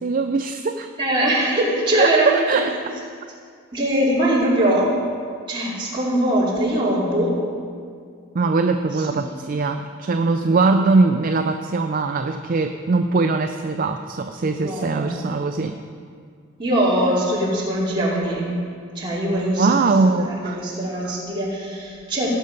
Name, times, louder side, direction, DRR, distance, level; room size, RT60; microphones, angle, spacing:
voice 1, 0.0-0.9 1.9-2.9 8.3-15.8 19.6-20.6 21.0-21.1, right 3 dB, 40° right, 6 dB, 0.4 m, -21 dB
voice 2, 1.0-3.0 3.7-4.9 5.5-7.3 8.9-9.3 14.6-15.2 16.6-18.5 18.9-22.3, right 1 dB, 25° right, -7 dB, 2.8 m, -22 dB
17.0 x 6.6 x 5.2 m, 2.2 s
head